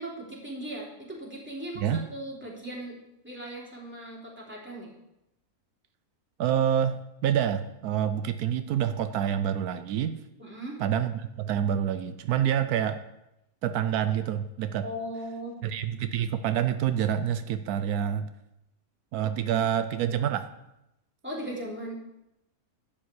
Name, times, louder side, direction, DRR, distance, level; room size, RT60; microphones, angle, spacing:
voice 1, 0.0-3.0 3.2-4.9 10.4-10.8 14.8-15.6 21.2-22.0, right 1 dB, 5° right, -4 dB, 3.0 m, -38 dB
voice 2, 6.4-10.2 10.8-13.0 13.6-14.9 15.6-18.3 19.1-20.4, right 9 dB, 85° right, 10 dB, 1.1 m, -27 dB
11.5 x 5.7 x 8.1 m, 0.87 s
omnidirectional pair, 1.6 m